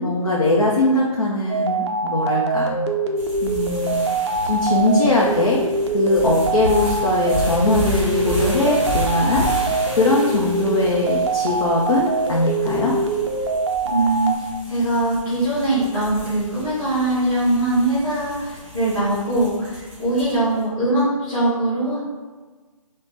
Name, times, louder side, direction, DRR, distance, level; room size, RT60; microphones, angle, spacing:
voice 1, 0.0-2.8 3.4-3.9 4.4-5.6 5.9-9.5 10.0-12.9, left 2 dB, 60° left, -4 dB, 0.5 m, -20 dB
sound 1, 1.5-14.4, right 3 dB, 50° right, 0.4 m, -23 dB
sound 2, 3.2-20.5, left 1 dB, 20° right, 0.9 m, -32 dB
voice 2, 13.9-22.0, right 2 dB, 10° left, -17 dB, 1.2 m, -21 dB
3.7 x 2.1 x 3.3 m, 1.3 s
hypercardioid pair, 175°, 18 cm